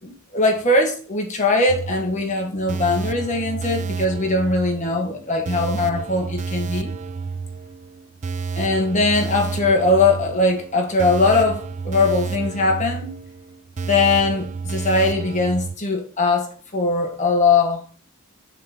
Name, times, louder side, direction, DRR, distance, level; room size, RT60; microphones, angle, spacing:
voice 1, 0.0-6.9 8.6-13.1 13.8-17.8, left 3 dB, 35° left, 1.6 m, -20 dB
sound 1, 1.7-15.8, right 5 dB, 35° right, 0.3 m, -30 dB
6.4 x 3.9 x 6.0 m
head